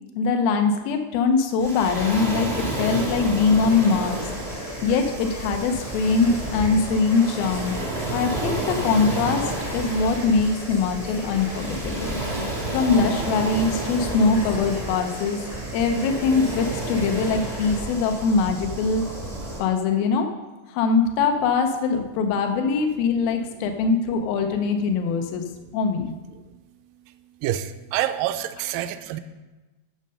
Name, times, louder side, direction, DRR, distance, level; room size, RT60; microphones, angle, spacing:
voice 1, 0.2-4.3 4.8-7.7 8.1-12.2 12.7-15.5 15.7-19.0 19.6-20.3 20.7-25.5 25.7-26.1, left 4 dB, 85° left, 5 dB, 2.6 m, -22 dB
Waves surf, 1.6-19.6, right 2 dB, 55° right, 0.3 m, -31 dB
sound 1, 3.6-17.8, equal, 35° left, 0.5 m, -38 dB
voice 2, 27.4-29.2, right 12 dB, 80° right, 10 dB, 2.1 m, -27 dB
11.0 x 6.6 x 5.3 m, 1.2 s
omnidirectional pair, 4.1 m